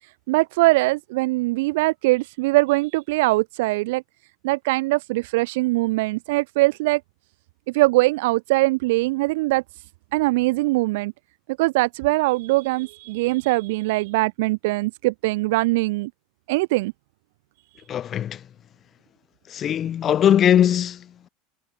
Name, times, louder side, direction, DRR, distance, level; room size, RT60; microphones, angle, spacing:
voice 1, 0.3-4.0 4.4-7.0 7.7-9.6 10.1-11.1 11.6-16.1 16.5-16.9, right 22 dB, 75° right, 0.7 m, -22 dB
voice 2, 17.9-18.5 19.5-21.3, left 10 dB, 35° left, 1.1 m, -20 dB
supercardioid pair, 110°, 0 cm